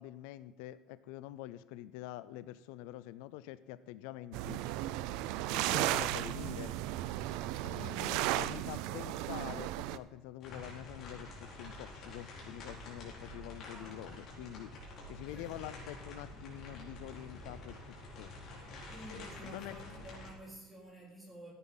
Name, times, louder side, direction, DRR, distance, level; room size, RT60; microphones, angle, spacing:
voice 1, 0.0-4.6 5.5-6.7 7.6-14.7 15.1-18.3 19.1-20.1, left 14 dB, 85° left, 15 dB, 0.5 m, -46 dB
sound 1, 4.3-10.0, right 14 dB, 70° right, 0.5 m, -35 dB
voice 2, 7.7-8.4 13.7-14.1 15.1-15.9 18.9-21.5, right 1 dB, ahead, -5 dB, 4.2 m, -52 dB
sound 2, 10.4-20.3, left 1 dB, 45° left, 4.2 m, -48 dB
14.5 x 9.6 x 4.0 m, 1.2 s
cardioid pair, 165°, 0 cm